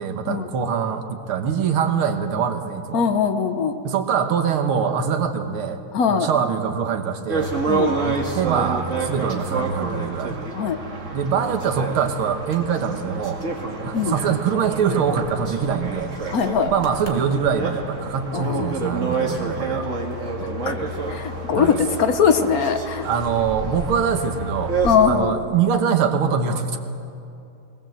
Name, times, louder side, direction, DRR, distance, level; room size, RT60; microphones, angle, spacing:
voice 1, 0.0-3.1 3.8-5.8 6.1-7.5 8.1-10.4 11.1-13.4 13.8-16.1 16.7-19.9 21.5-21.8 23.0-24.8 25.1-26.8, right 7 dB, 75° right, 7 dB, 2.1 m, -23 dB
voice 2, 2.9-3.7 5.9-6.3 7.7-7.9 10.5-10.8 13.9-14.1 16.3-16.7 18.3-18.7 20.7-20.8 21.1-23.1 24.8-25.4, left 6 dB, 55° left, 8 dB, 1.0 m, -21 dB
sound 1, 7.3-25.0, right 3 dB, 35° right, 2.1 m, -28 dB
19.5 x 19.0 x 7.6 m, 2.6 s
omnidirectional pair, 2.4 m